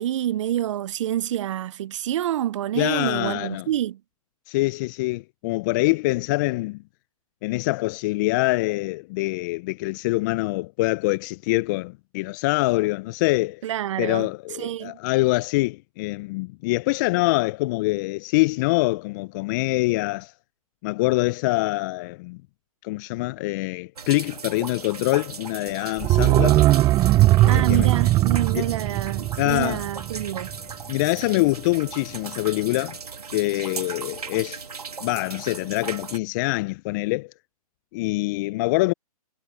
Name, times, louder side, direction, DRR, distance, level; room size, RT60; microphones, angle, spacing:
voice 1, 0.0-4.0 13.6-14.3 14.6-15.0 27.5-30.5, right 12 dB, 50° right, 0.8 m, -27 dB
voice 2, 2.8-3.7 4.5-6.8 7.4-13.6 14.0-20.3 20.8-22.4 22.8-26.6 27.4-27.9 28.5-28.6 29.4-29.8 30.9-33.0 33.3-34.6 35.0-37.3 37.9-38.9, left 22 dB, 30° left, 0.5 m, -24 dB
sound 1, 24.0-36.2, right 5 dB, 80° right, 3.0 m, -37 dB
sound 2, 26.0-30.7 31.0-31.1, right 16 dB, 20° right, 0.6 m, -19 dB
hypercardioid pair, 130°, 19 cm